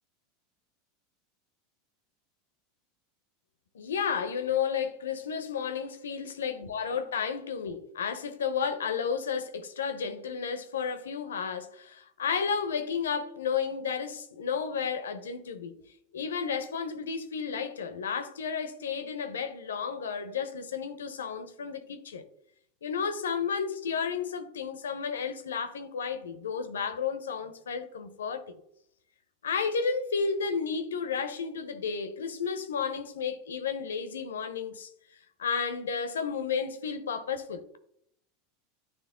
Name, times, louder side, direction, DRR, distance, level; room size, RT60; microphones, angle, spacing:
voice 1, 3.7-15.8 16.1-22.2 22.8-28.6 29.4-34.9 35.4-37.8, left 6 dB, 85° left, 0.7 m, -32 dB
9.5 x 3.2 x 3.7 m
hypercardioid pair, 95°, 0 cm